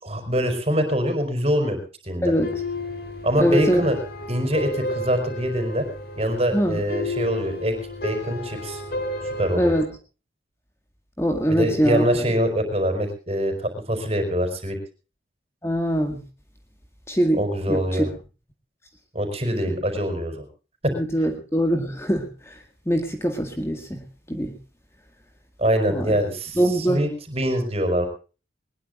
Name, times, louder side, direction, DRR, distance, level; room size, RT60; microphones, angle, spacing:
voice 1, 0.0-1.8 2.0-2.3 3.2-4.0 4.3-5.9 6.2-7.8 8.0-8.8 9.2-9.7 11.5-14.8 17.3-18.1 19.1-20.5 20.8-21.3 25.6-28.1, equal, 35° right, 7 dB, 5.0 m, -24 dB
sound 1, 2.3-9.9, left 2 dB, 55° left, 3.8 m, -32 dB
voice 2, 3.4-3.8 6.5-6.8 9.6-9.9 11.2-12.1 15.6-16.2 17.1-17.4 17.7-18.1 20.9-22.3 22.9-24.0 24.3-24.5 25.9-26.2 26.6-27.0, equal, 15° left, 5 dB, 1.9 m, -22 dB
21.5 x 20.5 x 2.5 m, 0.35 s
head